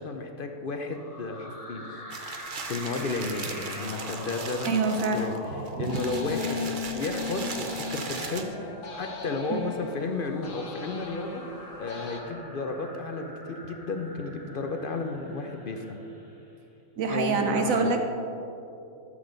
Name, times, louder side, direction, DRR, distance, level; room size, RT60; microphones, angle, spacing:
voice 1, 0.0-1.9 2.7-4.8 5.1-5.4 5.8-11.4 11.8-16.0 17.1-17.9, left 3 dB, 55° left, 5 dB, 0.6 m, -33 dB
sound 1, 0.8-16.5, left 1 dB, 25° left, 1.3 m, -43 dB
sound 2, 2.1-8.4, right 5 dB, 45° right, 0.8 m, -39 dB
voice 2, 4.6-5.2 5.8-6.0 9.5-9.7 17.0-18.0, right 4 dB, 80° right, 5 dB, 1.1 m, -26 dB
sound 3, 5.9-12.2, left 5 dB, 80° left, 1.4 m, -38 dB
12.5 x 7.6 x 3.9 m, 2.8 s
omnidirectional pair, 1.4 m